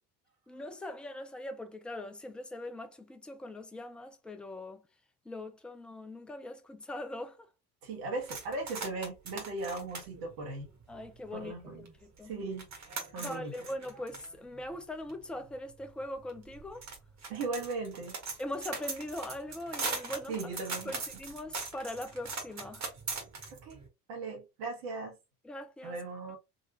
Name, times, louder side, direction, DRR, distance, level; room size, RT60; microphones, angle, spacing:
voice 1, 0.5-4.8 5.3-7.4 10.9-11.5 12.0-12.3 13.2-16.9 18.4-20.4 20.9-22.9 25.4-26.0, left 1 dB, ahead, 0.3 m, -41 dB
voice 2, 7.8-10.7 11.3-11.9 12.2-12.7 13.1-13.5 17.3-18.2 20.3-21.0 23.6-23.8 24.1-25.2 25.8-26.4, right 3 dB, 70° right, 1.4 m, -38 dB
sound 1, 8.2-11.4 11.8-11.9 12.2-23.8, right 4 dB, 35° right, 1.6 m, -41 dB
3.9 x 2.8 x 2.8 m
figure-of-eight pair, 60°, 49 cm